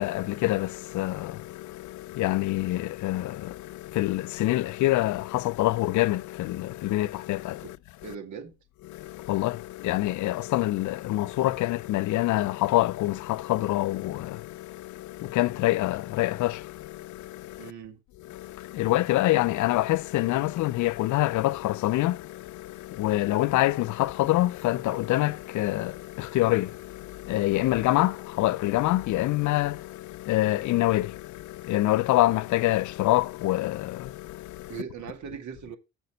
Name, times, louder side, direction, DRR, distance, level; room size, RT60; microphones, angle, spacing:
voice 1, 0.0-7.8 8.9-17.7 18.3-34.7, left 17 dB, 75° left, 0.5 m, -26 dB
voice 2, 8.0-8.5 17.6-18.0 34.7-35.8, right 7 dB, 70° right, 1.9 m, -39 dB
6.8 x 5.3 x 6.3 m
cardioid pair, 90°, 30 cm